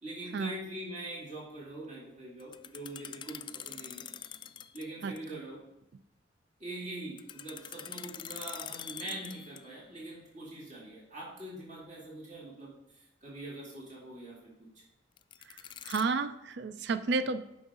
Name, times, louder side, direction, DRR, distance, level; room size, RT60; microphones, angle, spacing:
voice 1, 0.0-4.0 4.7-5.6 6.6-14.3, right 1 dB, 45° right, -5 dB, 2.6 m, -43 dB
sound 1, 2.4-4.9 5.2-5.3 7.2-9.8 15.2-16.0, left 9 dB, 25° left, 0.3 m, -44 dB
voice 2, 15.8-17.4, right 4 dB, 65° right, 12 dB, 0.4 m, -31 dB
9.3 x 6.0 x 3.7 m, 0.89 s
head